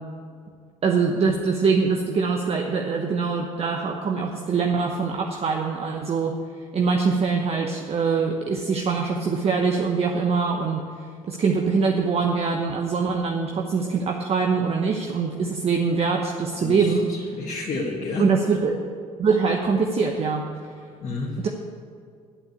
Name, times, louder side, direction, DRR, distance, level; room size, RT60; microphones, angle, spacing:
voice 1, 0.8-6.3 6.7-10.9 11.3-17.1 18.2-18.8 19.2-20.5 21.4-21.5, right 5 dB, 40° right, 2 dB, 1.0 m, -23 dB
voice 2, 16.6-18.3 21.0-21.4, left 3 dB, 45° left, -3 dB, 1.8 m, -30 dB
8.9 x 8.0 x 8.3 m, 2.2 s
hypercardioid pair, 60°, 17 cm